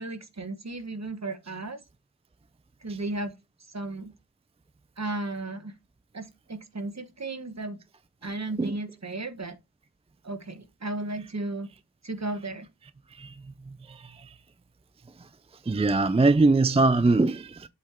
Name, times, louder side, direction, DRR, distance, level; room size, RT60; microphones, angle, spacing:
voice 1, 0.0-1.8 2.8-3.3 3.6-4.1 5.0-5.7 6.1-7.8 8.2-9.6 10.2-11.7 12.0-12.7, right 2 dB, 40° right, 1.2 m, -34 dB
voice 2, 13.1-14.3 15.2-15.3 15.6-17.7, right 3 dB, 15° right, 0.3 m, -23 dB
7.7 x 3.6 x 4.3 m
wide cardioid pair, 70°, 41 cm